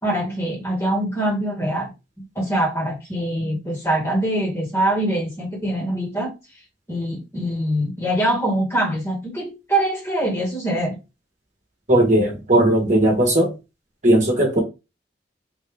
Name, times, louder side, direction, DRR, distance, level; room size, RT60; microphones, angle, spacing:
voice 1, 0.0-1.9 2.3-6.3 6.9-11.0, right 1 dB, 15° left, 1.6 m, -23 dB
voice 2, 11.9-13.5 14.0-14.6, right 1 dB, 40° right, 1.3 m, -17 dB
3.7 x 2.8 x 3.4 m
head